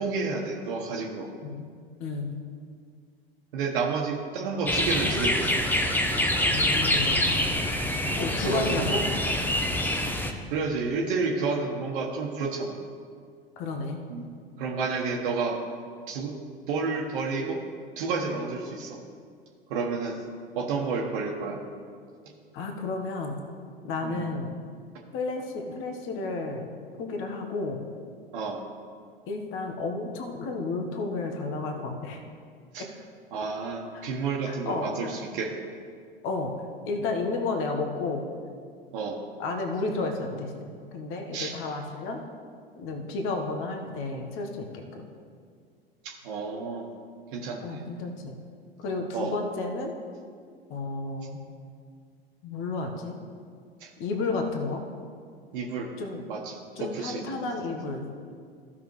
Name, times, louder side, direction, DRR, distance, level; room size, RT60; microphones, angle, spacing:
voice 1, 0.0-1.3 3.5-5.5 8.4-8.9 10.5-12.8 14.1-14.3 14.6-15.6 16.1-16.4 16.7-17.6 18.0-19.0 19.7-20.2 20.5-21.6 24.0-24.3 28.3-28.6 32.7-32.9 33.3-35.5 38.9-39.2 41.3-41.5 46.0-46.9 47.3-47.8 49.1-49.3 53.8-53.9 55.5-55.9 56.3-57.5, right 4 dB, 60° right, 0 dB, 1.2 m, -30 dB
sound 1, 4.7-10.3, left 1 dB, 5° left, 0.8 m, -25 dB
voice 2, 6.5-7.3 8.2-9.0 13.6-14.0 22.5-23.4 23.8-24.5 25.1-26.7 27.0-27.8 29.3-32.2 33.9-34.1 34.4-34.9 36.2-36.5 36.8-38.3 39.4-42.2 42.8-45.1 47.6-48.4 48.8-49.9 50.7-51.4 52.4-53.2 54.0-54.8 56.0-56.2 56.8-58.1, left 3 dB, 45° left, 3 dB, 1.3 m, -32 dB
15.0 x 6.1 x 3.1 m, 2.1 s
figure-of-eight pair, 80°, 30 cm